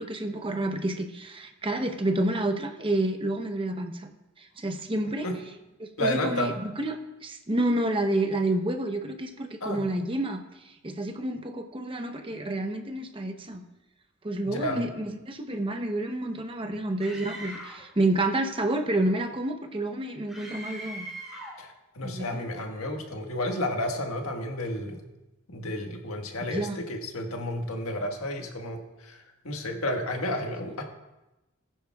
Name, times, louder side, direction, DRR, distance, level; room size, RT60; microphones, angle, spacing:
voice 1, 0.0-4.1 4.4-5.3 5.8-10.4 10.8-13.6 14.2-21.1 22.0-22.5 26.5-26.8, right 1 dB, 25° right, 5 dB, 0.8 m, -29 dB
voice 2, 6.0-6.5 9.6-9.9 14.4-14.8 21.6-25.0 25.5-29.2 29.4-30.8, left 1 dB, 90° left, 2 dB, 1.5 m, -31 dB
Screaming, 17.0-17.9 20.3-21.6, right 1 dB, ahead, 2.9 m, -40 dB
19.0 x 10.0 x 2.3 m, 1.0 s
head